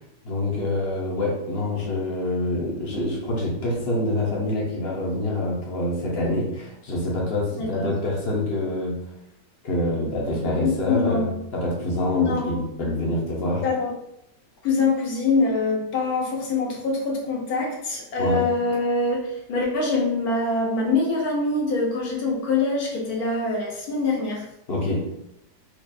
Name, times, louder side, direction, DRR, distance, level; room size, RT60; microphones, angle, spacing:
voice 1, 0.2-9.0 9.6-13.6 18.2-18.5 24.7-25.1, left 1 dB, 50° left, -3 dB, 0.8 m, -26 dB
voice 2, 7.6-7.9 10.6-11.3 12.1-12.6 13.6-13.9 14.6-24.4, left 3 dB, 65° left, -2 dB, 1.3 m, -24 dB
4.5 x 2.4 x 2.6 m, 0.82 s
omnidirectional pair, 1.8 m